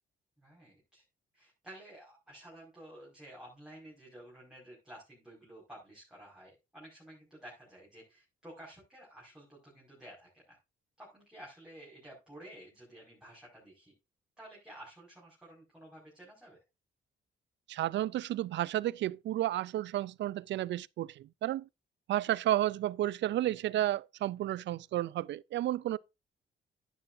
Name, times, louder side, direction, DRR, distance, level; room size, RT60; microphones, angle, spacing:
voice 1, 0.4-1.0 1.3-10.6 11.0-13.9 14.4-16.6, right 1 dB, 5° right, 5.3 m, -52 dB
voice 2, 17.7-21.7 22.1-26.0, right 13 dB, 65° right, 0.4 m, -32 dB
11.0 x 9.9 x 2.7 m
cardioid pair, 90°, 20 cm